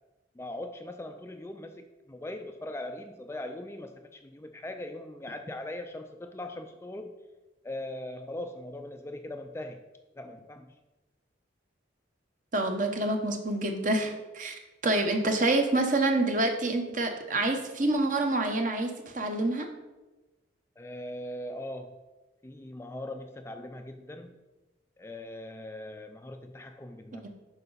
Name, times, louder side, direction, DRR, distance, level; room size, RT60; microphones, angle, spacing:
voice 1, 0.4-7.1 7.6-9.8 10.2-10.7 20.8-22.0 22.4-24.3 25.0-27.3, left 1 dB, 15° left, 5 dB, 0.3 m, -40 dB
voice 2, 12.5-14.5 14.8-19.7 27.2-27.3, right 2 dB, 40° right, 4 dB, 0.9 m, -27 dB
11.0 x 4.8 x 4.0 m, 1.1 s
head